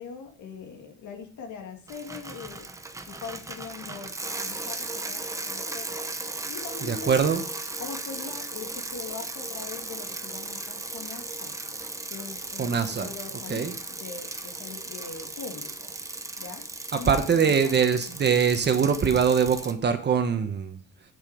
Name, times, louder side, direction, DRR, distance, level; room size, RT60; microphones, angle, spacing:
voice 1, 0.0-2.7 3.1-6.1 6.4-7.2 7.8-11.5 12.1-15.9 16.4-18.0, left 6 dB, 70° left, 3 dB, 2.6 m, -41 dB
Bicycle, 1.9-19.7, right 2 dB, 10° right, 0.8 m, -36 dB
voice 2, 6.8-7.4 12.6-13.1 13.5-13.7 16.9-20.8, right 6 dB, 35° right, 7 dB, 1.2 m, -23 dB
8.2 x 7.4 x 5.1 m, 0.41 s
cardioid pair, 150°, 31 cm